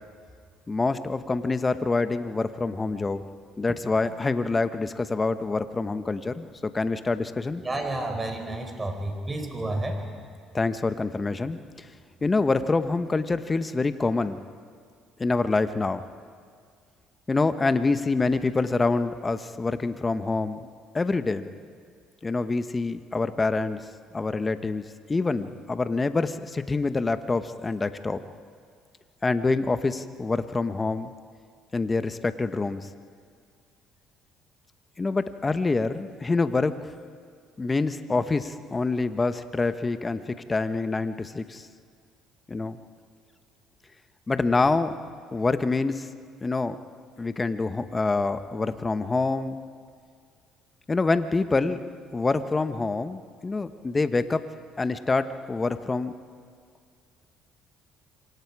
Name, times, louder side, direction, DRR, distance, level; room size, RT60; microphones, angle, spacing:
voice 1, 0.7-3.2 3.6-7.6 10.5-11.9 12.2-14.4 15.2-16.0 17.3-20.7 20.9-21.5 22.2-23.9 24.1-28.2 29.2-31.1 31.7-32.9 35.0-36.9 37.6-41.7 42.5-42.8 44.3-45.0 45.3-46.1 46.4-46.8 47.2-49.6 50.9-51.8 52.1-54.4 54.8-56.1, left 3 dB, 25° left, 10 dB, 1.2 m, -26 dB
voice 2, 7.6-10.0, right 2 dB, 25° right, 5 dB, 4.8 m, -30 dB
26.5 x 24.5 x 4.9 m, 2.1 s
hypercardioid pair, 65°, 0 cm